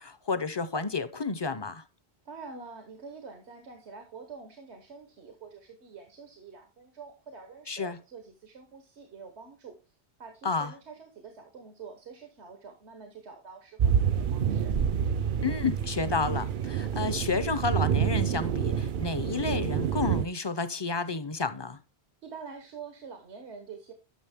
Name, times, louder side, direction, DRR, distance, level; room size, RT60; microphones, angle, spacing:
voice 1, 0.0-1.8 7.7-8.0 10.4-10.7 15.4-21.8, left 4 dB, 30° left, 0.5 m, -31 dB
voice 2, 2.2-9.7 10.2-14.7 22.2-23.9, right 5 dB, 90° right, 1.4 m, -46 dB
sound 1, 13.8-20.2, right 8 dB, 60° right, 0.6 m, -28 dB
10.0 x 6.3 x 3.5 m
omnidirectional pair, 1.1 m